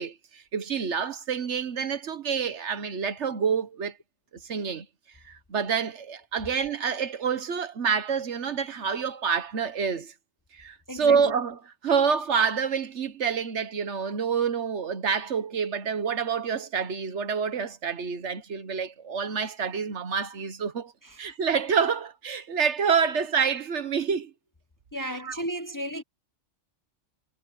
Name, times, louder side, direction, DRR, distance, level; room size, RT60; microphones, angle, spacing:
voice 1, 0.0-4.0 4.4-4.9 5.2-10.1 10.5-20.9 21.2-24.3 25.0-25.4, right 6 dB, 65° right, 1.4 m, -27 dB
voice 2, 10.9-11.2 24.9-26.0, equal, 20° left, 0.8 m, -33 dB
omnidirectional pair, 1.3 m